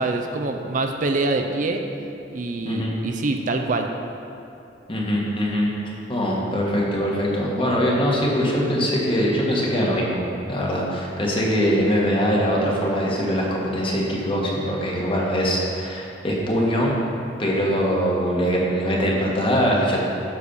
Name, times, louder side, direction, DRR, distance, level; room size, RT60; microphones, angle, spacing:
voice 1, 0.0-1.8 2.3-3.9, right 2 dB, 45° right, 4 dB, 0.5 m, -25 dB
voice 2, 2.6-3.0 4.9-5.7 6.1-16.9 17.4-20.0, equal, 30° left, -3 dB, 1.4 m, -22 dB
9.4 x 4.2 x 6.9 m, 2.8 s
head